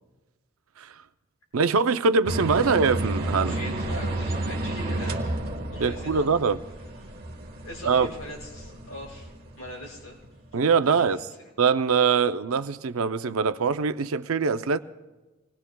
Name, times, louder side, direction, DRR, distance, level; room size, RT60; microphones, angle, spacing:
voice 1, 1.5-3.5 5.8-6.6 7.9-8.1 10.5-11.2 11.6-14.8, right 5 dB, 75° right, 0.5 m, -23 dB
sound 1, 2.3-10.3, right 1 dB, 45° right, 1.2 m, -31 dB
voice 2, 3.3-5.4 5.7-6.3 7.0-10.2 10.9-11.1, left 1 dB, 85° left, 5.3 m, -41 dB
26.5 x 19.5 x 2.3 m
head